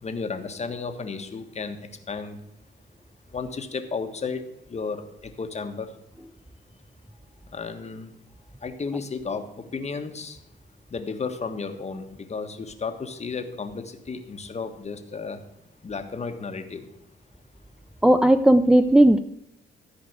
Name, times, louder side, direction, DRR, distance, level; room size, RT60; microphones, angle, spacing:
voice 1, 0.0-1.8 2.1-2.4 3.3-4.4 4.7-5.9 7.5-8.1 8.6-10.4 10.9-15.4 15.8-16.9, left 4 dB, 35° left, 6 dB, 1.5 m, -33 dB
voice 2, 18.0-19.2, right 1 dB, 5° right, 7 dB, 0.5 m, -16 dB
14.0 x 5.1 x 8.2 m, 0.79 s
cardioid pair, 90°, 20 cm